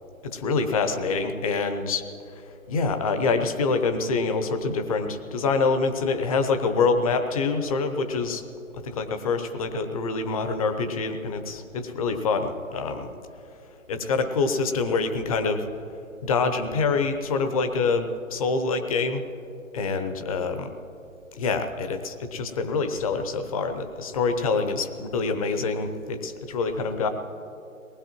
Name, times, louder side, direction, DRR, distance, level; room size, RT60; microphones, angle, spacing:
voice 1, 0.3-2.0 2.7-8.4 8.8-13.1 13.9-15.6 16.2-19.2 19.7-20.7 21.3-27.1, left 4 dB, 25° left, 7 dB, 0.8 m, -26 dB
23.0 x 19.5 x 3.1 m, 2.9 s
figure-of-eight pair, 140°, 40 cm